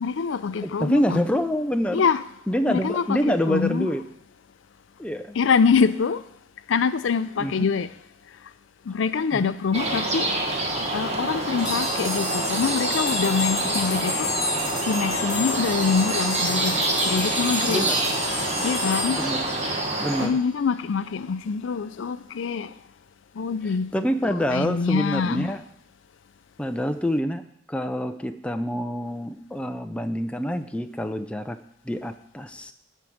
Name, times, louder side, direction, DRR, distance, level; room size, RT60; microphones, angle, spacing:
voice 1, 0.0-1.2 1.9-2.2 2.7-3.9 5.3-6.2 6.7-7.9 8.9-10.4 10.9-14.4 14.9-17.8 18.6-19.2 20.2-22.7 23.4-23.9 24.5-25.5, left 5 dB, 70° left, 0.4 m, -25 dB
voice 2, 0.6-2.0 2.5-4.0 5.0-5.4 7.4-7.7 9.3-9.5 17.7-18.0 19.2-19.4 20.0-20.4 23.6-25.6 26.6-27.4 27.7-31.6 31.9-32.7, equal, 5° left, 0.4 m, -26 dB
sound 1, 9.7-20.3, right 2 dB, 30° right, 1.3 m, -27 dB
sound 2, 11.6-20.1, left 2 dB, 25° left, 4.9 m, -31 dB
11.0 x 4.6 x 7.1 m
head